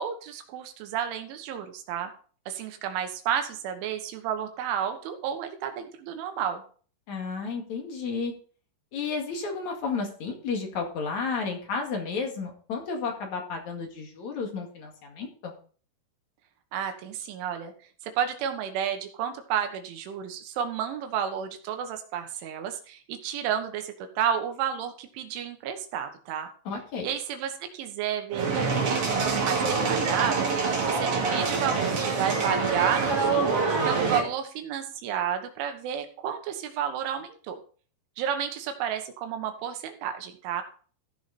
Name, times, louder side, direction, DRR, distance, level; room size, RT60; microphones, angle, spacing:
voice 1, 0.0-2.1 2.5-6.6 16.7-17.7 18.0-26.5 27.0-33.6 33.9-37.6 38.2-40.6, right 9 dB, 85° right, 6 dB, 3.7 m, -31 dB
voice 2, 7.1-8.3 8.9-15.5 26.6-27.1, left 4 dB, 50° left, 2 dB, 2.8 m, -32 dB
sound 1, 28.3-34.2, right 4 dB, 40° right, 2.7 m, -25 dB
15.0 x 6.4 x 4.2 m, 0.42 s
omnidirectional pair, 5.4 m